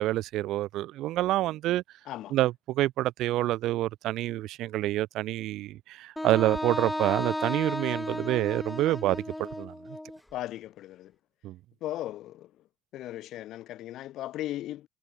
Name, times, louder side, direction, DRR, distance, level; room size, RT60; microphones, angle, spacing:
voice 1, 0.0-1.8 2.3-9.7 11.4-11.6, right 15 dB, 70° right, 0.9 m, -27 dB
Wind instrument woodwind instrument, 6.2-10.2, left 1 dB, 10° left, 5.2 m, -34 dB
voice 2, 10.3-11.1 11.8-12.5 12.9-14.9, left 14 dB, 65° left, 1.0 m, -37 dB
hypercardioid pair, 45°, 0 cm